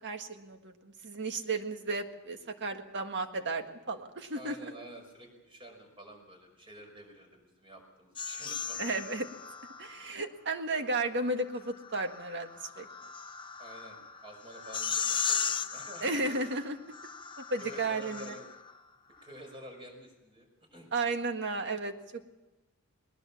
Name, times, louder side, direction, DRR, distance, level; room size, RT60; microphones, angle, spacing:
voice 1, 0.0-4.7 8.7-9.3 9.8-12.9 16.0-16.8 17.5-18.3 20.9-22.2, right 2 dB, 55° right, 6 dB, 1.7 m, -34 dB
voice 2, 4.3-9.0 13.6-16.3 17.6-18.4 19.2-20.9, equal, 25° right, 3 dB, 5.5 m, -49 dB
sound 1, 8.2-10.1 11.6-18.8, left 7 dB, 20° left, 0.8 m, -37 dB
20.5 x 20.0 x 7.2 m, 1.0 s
head